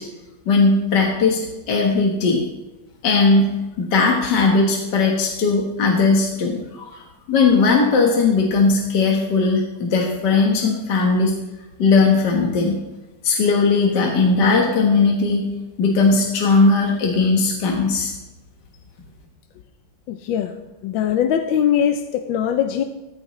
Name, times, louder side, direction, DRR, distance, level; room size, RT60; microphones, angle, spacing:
voice 1, 0.5-1.4 1.7-2.4 3.0-3.5 3.8-7.0 7.3-11.4 11.8-12.8 13.2-15.5 15.8-18.1, left 4 dB, 65° left, 0 dB, 2.0 m, -18 dB
voice 2, 20.1-20.5 20.8-22.8, left 9 dB, 85° left, 7 dB, 1.5 m, -21 dB
15.0 x 14.0 x 3.2 m, 1.0 s
omnidirectional pair, 2.1 m